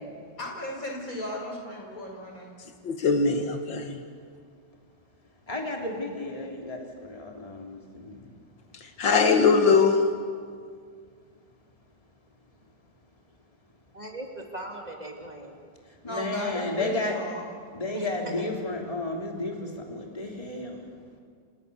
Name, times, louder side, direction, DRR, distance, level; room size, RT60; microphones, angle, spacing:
voice 1, 0.4-2.5 16.1-17.5, left 1 dB, 45° left, 0 dB, 6.3 m, -35 dB
voice 2, 2.9-3.9 9.0-10.0, left 5 dB, 90° left, 5 dB, 2.5 m, -21 dB
voice 3, 5.5-8.1 16.0-17.1 17.7-20.8, left 2 dB, 20° left, 0 dB, 3.4 m, -32 dB
voice 4, 13.9-15.6 17.9-18.5, right 1 dB, 20° right, 0 dB, 3.1 m, -39 dB
29.0 x 28.0 x 7.1 m, 2.1 s
omnidirectional pair, 2.0 m